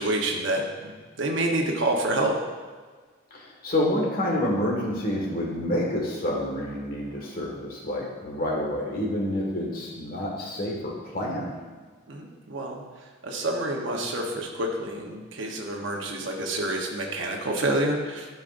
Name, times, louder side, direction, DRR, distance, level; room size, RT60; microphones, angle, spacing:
voice 1, 0.0-2.4 12.1-12.8 13.2-18.3, right 1 dB, 75° right, 0 dB, 1.0 m, -28 dB
voice 2, 3.3-11.5, left 1 dB, 50° left, -2 dB, 1.8 m, -28 dB
12.0 x 5.4 x 2.6 m, 1.5 s
head